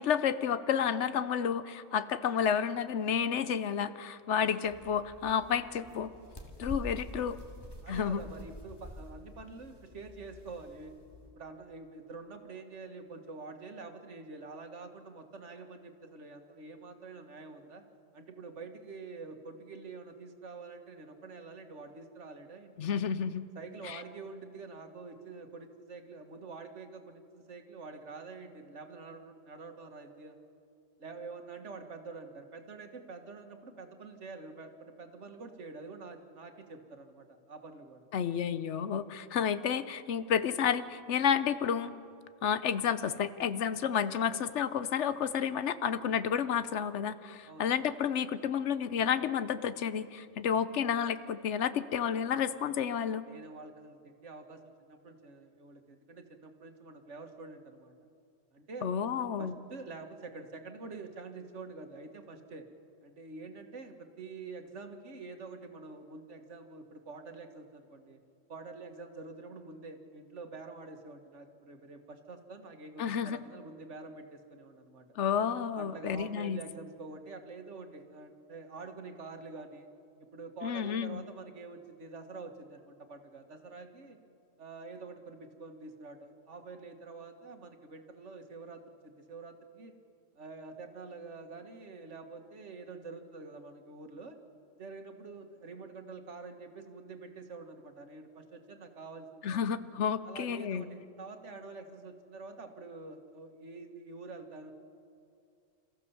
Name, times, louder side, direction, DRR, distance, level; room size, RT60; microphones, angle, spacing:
voice 1, 0.0-6.1 6.6-7.4 7.9-8.2 22.8-23.5 23.8-24.0 38.1-41.9 42.4-53.2 58.8-59.5 73.0-73.4 75.2-76.6 80.6-81.2 99.4-100.9, left 8 dB, 75° left, 13 dB, 1.0 m, -31 dB
sound 1, 4.6-11.3, equal, 20° left, 2.2 m, -47 dB
voice 2, 7.8-10.9 11.4-17.8 18.1-22.9 23.6-30.4 31.0-38.1 47.5-47.7 53.3-57.9 58.5-58.9 59.4-62.7 63.0-68.2 68.5-75.1 75.7-79.9 80.3-84.2 84.6-89.9 90.4-94.4 94.8-99.7 100.2-104.7, right 3 dB, 75° right, 6 dB, 1.8 m, -47 dB
27.5 x 14.5 x 7.1 m, 2.5 s
omnidirectional pair, 1.2 m